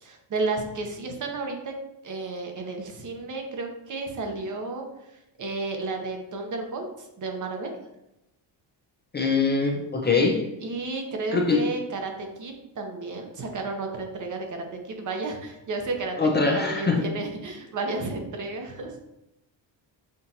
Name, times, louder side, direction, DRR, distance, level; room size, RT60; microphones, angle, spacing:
voice 1, 0.0-7.7 10.6-19.0, right 3 dB, 40° right, 3 dB, 0.8 m, -32 dB
voice 2, 9.1-10.4 11.3-11.6 16.2-17.0, left 4 dB, 25° left, 0 dB, 0.5 m, -23 dB
6.0 x 2.5 x 2.8 m, 0.88 s
cardioid pair, 105°, 45 cm